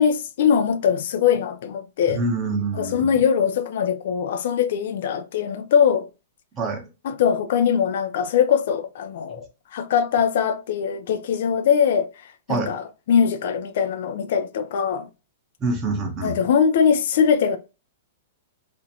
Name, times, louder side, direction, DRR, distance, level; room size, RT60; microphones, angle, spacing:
voice 1, 0.0-2.2 2.7-6.1 7.0-15.1 16.2-17.6, left 7 dB, 60° left, 0.4 m, -21 dB
voice 2, 2.1-3.2 6.5-6.8 12.5-12.7 15.6-16.4, right 3 dB, 15° right, 0.7 m, -26 dB
2.5 x 2.1 x 2.7 m
hypercardioid pair, 155°, 0 cm